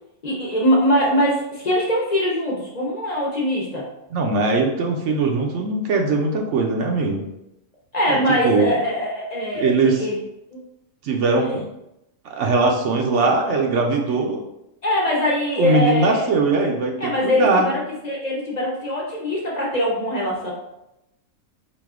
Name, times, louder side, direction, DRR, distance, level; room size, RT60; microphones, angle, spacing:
voice 1, 0.2-3.8 7.9-10.2 10.5-10.6 11.4-11.5 14.8-16.3 17.0-20.5, equal, 40° left, -4 dB, 0.8 m, -22 dB
voice 2, 4.1-7.2 8.1-8.2 8.4-8.7 9.6-10.1 11.0-11.6 12.2-14.4 15.6-17.6, right 3 dB, 70° right, 2 dB, 0.9 m, -20 dB
4.1 x 2.6 x 3.5 m, 0.88 s
omnidirectional pair, 1.3 m